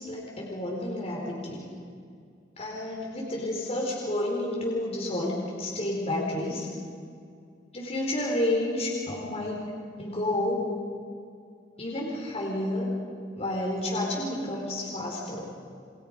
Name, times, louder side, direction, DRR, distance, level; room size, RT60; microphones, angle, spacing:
voice 1, 0.0-1.6 2.6-6.7 7.7-9.7 10.0-10.7 11.8-12.9 13.4-15.5, left 1 dB, 35° left, -3 dB, 4.6 m, -30 dB
29.5 x 25.5 x 5.4 m, 2.2 s
head